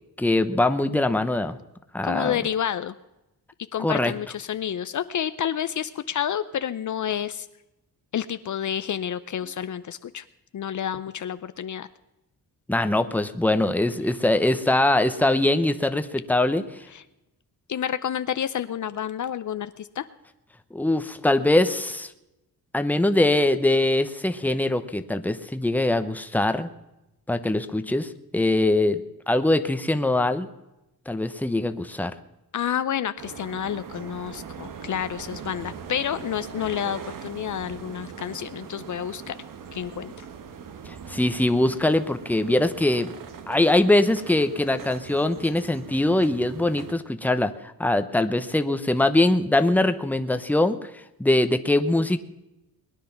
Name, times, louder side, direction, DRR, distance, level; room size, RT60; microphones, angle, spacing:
voice 1, 0.2-1.6 1.9-2.4 3.8-4.1 12.7-16.6 20.7-22.1 22.7-26.7 27.3-29.0 29.3-30.5 31.1-32.1 40.9-43.1 43.5-47.5 47.8-50.9 51.2-52.2, left 1 dB, 5° left, 9 dB, 1.0 m, -22 dB
voice 2, 2.0-2.9 3.7-7.5 8.1-10.2 10.5-11.9 16.9-17.0 17.7-20.1 32.5-39.4 39.7-40.1, left 9 dB, 50° left, 13 dB, 0.6 m, -29 dB
sound 1, 33.2-46.9, right 7 dB, 60° right, 1.3 m, -41 dB
21.0 x 10.0 x 5.9 m, 0.93 s
cardioid pair, 100°, 37 cm